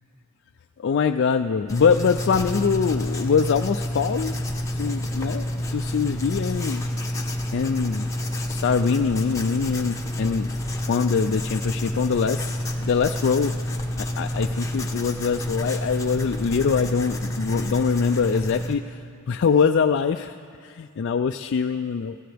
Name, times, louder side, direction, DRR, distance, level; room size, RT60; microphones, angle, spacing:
voice 1, 0.8-4.3 4.7-6.9 7.5-10.6 10.9-13.6 14.0-19.0 19.3-20.4 20.6-22.2, left 6 dB, 55° left, 6 dB, 0.3 m, -23 dB
Writing, 1.7-18.7, left 1 dB, 15° left, 0.9 m, -28 dB
23.0 x 16.0 x 3.4 m, 2.3 s
head